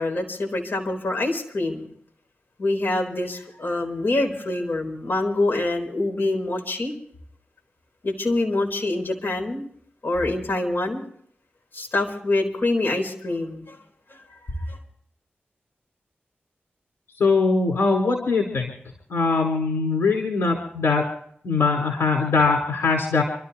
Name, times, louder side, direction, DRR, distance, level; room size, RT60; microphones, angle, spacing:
voice 1, 0.0-1.9 2.6-6.9 8.0-9.7 10.0-11.0 11.7-13.8 14.1-14.2 14.6-14.8, left 2 dB, 60° left, 2 dB, 4.0 m, -25 dB
voice 2, 17.2-18.7 19.1-21.1 21.4-23.2, left 4 dB, 90° left, 0 dB, 4.6 m, -21 dB
29.0 x 13.5 x 2.9 m, 0.64 s
wide cardioid pair, 70°, 4 cm